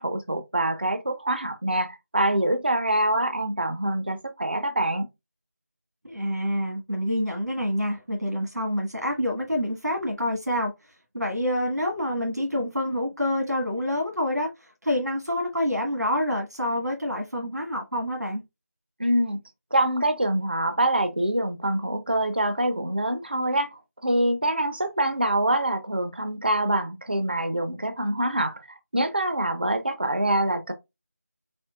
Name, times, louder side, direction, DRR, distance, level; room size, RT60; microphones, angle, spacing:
voice 1, 0.0-5.1 19.0-19.4 19.7-30.7, right 1 dB, 40° right, 0.5 m, -25 dB
voice 2, 6.0-18.4, left 1 dB, 85° right, 1.5 m, -27 dB
4.4 x 4.3 x 2.3 m
figure-of-eight pair, 170°, 9 cm